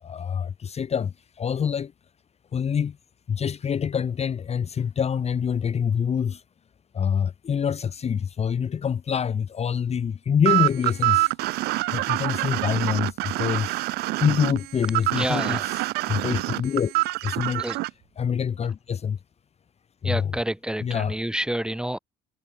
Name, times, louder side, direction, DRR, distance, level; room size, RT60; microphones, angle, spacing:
voice 1, 0.0-1.9 2.5-3.0 3.3-6.4 6.9-11.4 11.9-13.9 14.2-15.6 16.1-16.9 17.2-17.6 18.2-19.2 20.0-20.2 20.8-21.1, left 7 dB, 40° left, 1.2 m, -26 dB
sound 1, 10.5-17.9, right 20 dB, 80° right, 0.7 m, -25 dB
voice 2, 15.1-15.7 17.6-17.8 20.0-22.0, right 1 dB, 5° right, 2.2 m, -29 dB
supercardioid pair, 85°, 16 cm